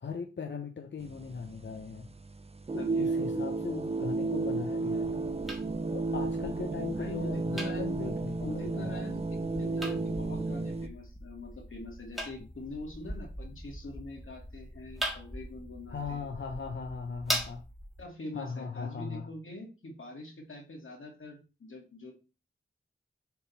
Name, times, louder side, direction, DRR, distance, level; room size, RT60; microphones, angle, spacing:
voice 1, 0.0-2.1 2.7-5.2 5.9-8.9 15.9-17.6 18.3-19.3, left 5 dB, 60° left, 4 dB, 0.8 m, -39 dB
sound 1, 1.0-10.9, right 3 dB, 30° right, 0.5 m, -32 dB
voice 2, 2.8-3.1 7.0-8.1 8.4-16.3 18.0-22.1, left 2 dB, 80° left, 0 dB, 2.3 m, -44 dB
sound 2, 5.0-18.0, equal, ahead, 1.6 m, -41 dB
6.9 x 3.9 x 4.0 m, 0.31 s
wide cardioid pair, 75°, 20 cm